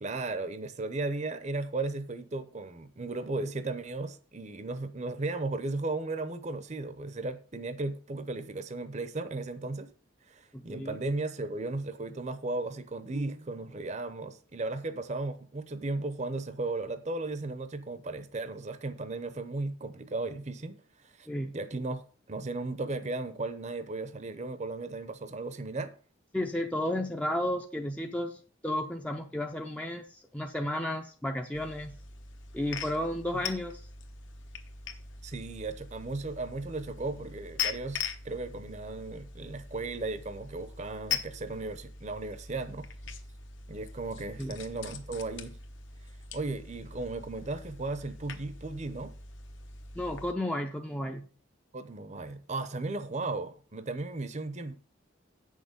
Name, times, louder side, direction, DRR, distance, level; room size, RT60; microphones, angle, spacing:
voice 1, 0.0-9.9 10.3-21.3 21.5-22.0 22.3-25.9 33.3-33.4 35.2-42.9 43.7-45.6 46.3-49.1 51.7-54.7, right 2 dB, 35° right, 0.7 m, -35 dB
voice 2, 10.5-11.0 21.3-21.5 26.3-32.0 32.5-33.9 44.4-44.5 49.9-51.3, left 1 dB, 5° left, 0.5 m, -33 dB
sound 1, 13.1-14.2, right 3 dB, 75° right, 0.8 m, -49 dB
sound 2, 31.5-50.3, left 6 dB, 65° left, 1.0 m, -42 dB
8.6 x 6.4 x 5.2 m
head